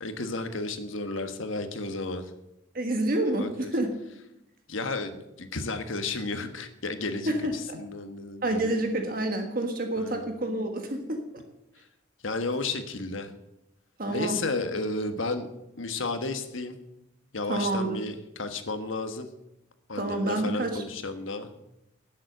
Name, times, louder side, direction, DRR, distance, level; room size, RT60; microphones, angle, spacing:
voice 1, 0.0-2.3 3.4-3.7 4.7-8.7 10.0-10.3 12.2-13.3 14.1-15.5 15.8-16.8 17.3-19.3 19.9-21.5, left 3 dB, 80° left, 8 dB, 1.4 m, -33 dB
voice 2, 2.7-3.9 7.3-7.6 8.4-11.4 14.0-14.4 17.5-18.0 19.9-20.8, right 1 dB, 45° right, 4 dB, 1.6 m, -28 dB
12.0 x 7.4 x 7.8 m, 0.86 s
head